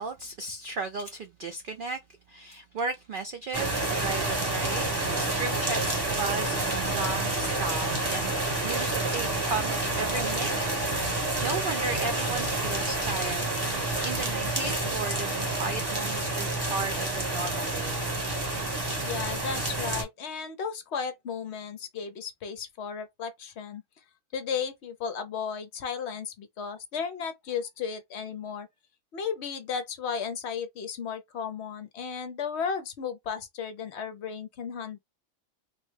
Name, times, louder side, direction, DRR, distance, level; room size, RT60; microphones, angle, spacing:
voice 1, 0.0-2.0 2.3-4.9 5.4-10.7 11.0-13.5 13.7-18.0, right 3 dB, 75° right, 0.5 m, -35 dB
sound 1, 3.5-20.0, right 2 dB, 20° right, 1.0 m, -29 dB
voice 2, 19.1-23.8 24.3-28.7 29.1-35.0, left 6 dB, 60° left, 0.8 m, -34 dB
3.4 x 2.1 x 3.1 m
omnidirectional pair, 1.4 m